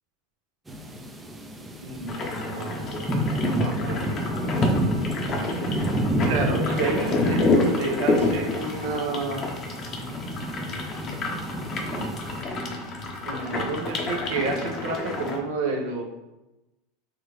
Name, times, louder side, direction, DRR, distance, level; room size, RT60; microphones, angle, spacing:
sound 1, 0.7-12.4, equal, 10° right, 0.4 m, -30 dB
voice 1, 1.8-2.8 3.4-4.1 5.1-5.9 6.2-9.5 13.2-16.0, right 3 dB, 70° right, 1 dB, 0.8 m, -30 dB
sound 2, 2.1-15.4, left 2 dB, 40° left, 0.7 m, -29 dB
4.6 x 2.4 x 3.1 m, 1.0 s
supercardioid pair, 110°, 0 cm